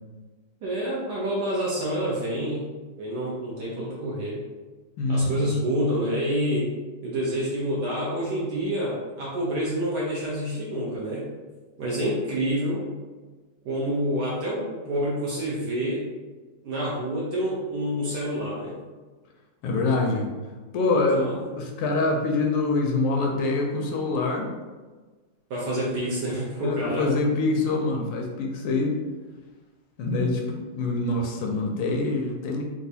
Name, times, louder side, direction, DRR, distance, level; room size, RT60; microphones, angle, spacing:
voice 1, 0.6-2.6 3.0-4.4 5.1-6.7 7.0-11.3 11.8-12.8 13.6-16.1 16.6-18.8 20.9-21.4 25.5-27.1, equal, 65° right, -5 dB, 1.0 m, -28 dB
voice 2, 5.0-5.3 19.6-20.3 20.7-24.5 26.6-29.0 30.0-32.6, left 3 dB, 85° left, 2 dB, 1.5 m, -25 dB
4.0 x 2.3 x 2.7 m, 1.3 s
omnidirectional pair, 2.3 m